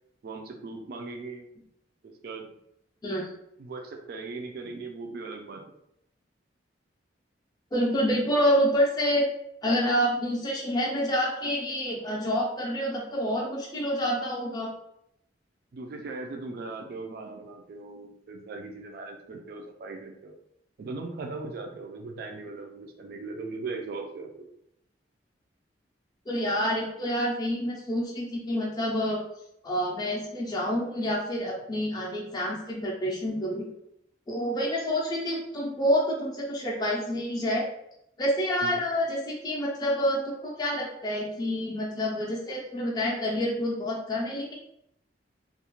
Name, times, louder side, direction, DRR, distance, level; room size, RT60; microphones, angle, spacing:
voice 1, 0.2-1.5 2.0-2.5 3.6-5.6 15.7-20.3 20.8-24.5 38.6-38.8, right 3 dB, 55° right, 3 dB, 0.3 m, -39 dB
voice 2, 7.7-9.3 9.6-14.7 26.3-29.2 29.6-33.7 34.3-37.7 38.2-44.5, equal, 20° left, -3 dB, 0.4 m, -28 dB
2.3 x 2.1 x 2.9 m, 0.77 s
head